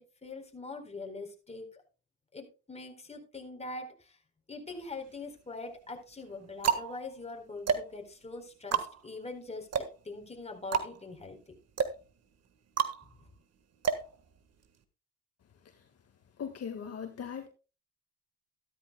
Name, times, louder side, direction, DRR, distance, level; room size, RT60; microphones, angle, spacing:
voice 1, 0.0-1.8 2.3-4.2 4.5-11.6, left 3 dB, 20° left, 4.1 m, -43 dB
sound 1, 4.7-5.4 6.1-14.8, right 7 dB, 55° right, 1.6 m, -33 dB
voice 2, 16.4-17.5, left 7 dB, 55° left, 1.8 m, -39 dB
14.0 x 13.0 x 2.3 m
cardioid pair, 90°, 30 cm